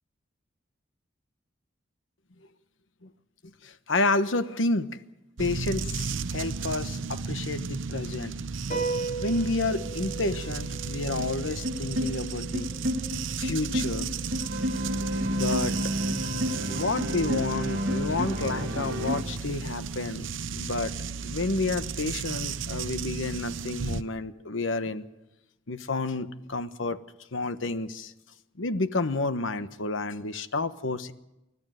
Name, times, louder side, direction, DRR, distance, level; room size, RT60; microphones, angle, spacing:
voice 1, 3.4-5.0 5.4-8.3 9.2-12.7 13.4-14.1 15.3-15.8 16.7-20.9 21.2-25.1 25.7-27.0 27.3-28.1 28.6-31.1, left 3 dB, 85° left, 11 dB, 1.1 m, -30 dB
sound 1, 5.4-24.0, right 5 dB, 80° right, 0.8 m, -34 dB
sound 2, 8.7-15.4, right 4 dB, 45° left, 3.0 m, -38 dB
sound 3, 11.2-19.2, equal, 55° right, 1.9 m, -31 dB
30.0 x 13.5 x 7.8 m, 0.96 s
head